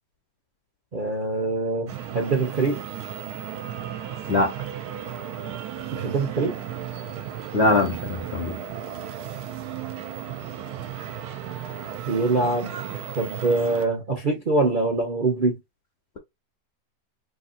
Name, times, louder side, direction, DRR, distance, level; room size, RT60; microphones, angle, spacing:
voice 1, 0.9-2.8 5.9-6.6 12.1-15.6, right 3 dB, 45° right, 0.6 m, -24 dB
sound 1, 1.9-13.9, right 10 dB, 65° right, 1.1 m, -35 dB
voice 2, 7.5-8.6, left 2 dB, 60° left, 0.7 m, -22 dB
2.9 x 2.7 x 3.9 m
omnidirectional pair, 1.9 m